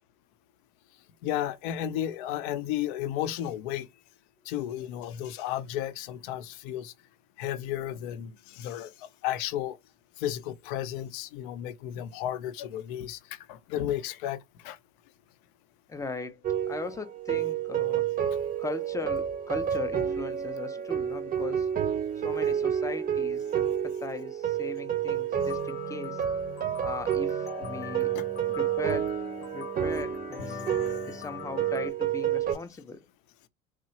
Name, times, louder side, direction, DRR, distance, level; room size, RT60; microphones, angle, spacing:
voice 1, 1.2-3.9 4.5-6.9 7.4-9.8 10.2-14.8 28.1-28.2 30.8-31.1, left 11 dB, 60° left, 0.5 m, -33 dB
voice 2, 15.9-16.4 16.7-18.0 18.6-21.7 22.2-26.2 26.8-28.1 28.6-30.6 31.0-33.1, left 4 dB, 10° left, 0.5 m, -38 dB
sound 1, 16.4-32.5, right 9 dB, 30° right, 0.6 m, -30 dB
sound 2, 25.3-31.9, left 5 dB, 80° left, 0.9 m, -41 dB
3.0 x 2.1 x 2.7 m
hypercardioid pair, 70°, 29 cm